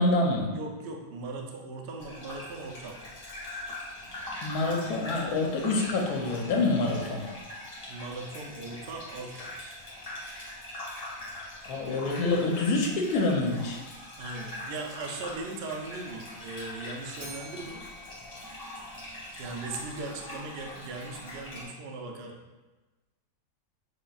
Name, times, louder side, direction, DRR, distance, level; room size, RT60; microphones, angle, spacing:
voice 1, 0.0-0.5 4.4-7.2 11.6-13.8, left 2 dB, 85° left, 1 dB, 1.2 m, -26 dB
voice 2, 0.5-3.0 7.9-9.7 14.2-17.8 19.4-22.4, right 3 dB, 75° right, 1 dB, 0.5 m, -39 dB
Gurgling / Bathtub (filling or washing), 2.0-21.7, left 1 dB, 35° left, 0.7 m, -42 dB
Bell, 17.2-19.4, equal, 50° right, 1.4 m, -48 dB
6.6 x 2.2 x 2.3 m, 1.2 s
omnidirectional pair, 1.6 m